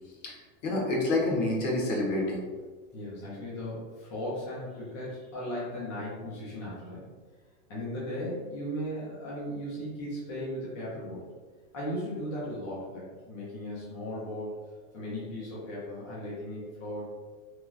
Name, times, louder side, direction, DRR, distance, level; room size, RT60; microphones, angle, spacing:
voice 1, 0.2-2.4, left 2 dB, 60° left, -2 dB, 1.0 m, -28 dB
voice 2, 2.9-7.1 7.7-11.2 11.7-14.6 14.9-17.0, equal, 25° left, -7 dB, 0.3 m, -37 dB
3.1 x 2.4 x 2.3 m, 1.4 s
supercardioid pair, 155°, 41 cm